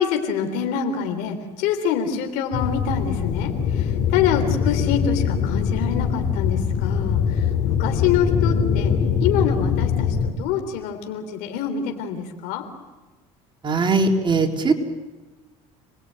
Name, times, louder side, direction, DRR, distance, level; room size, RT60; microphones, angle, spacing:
voice 1, 0.0-8.9 9.2-12.6, left 8 dB, 80° left, 5 dB, 3.4 m, -26 dB
sound 1, 2.5-10.3, left 7 dB, 60° left, 3.8 m, -22 dB
voice 2, 13.6-14.7, right 3 dB, 35° right, 3 dB, 3.9 m, -20 dB
28.5 x 21.0 x 9.2 m, 1.2 s
supercardioid pair, 95°, 15 cm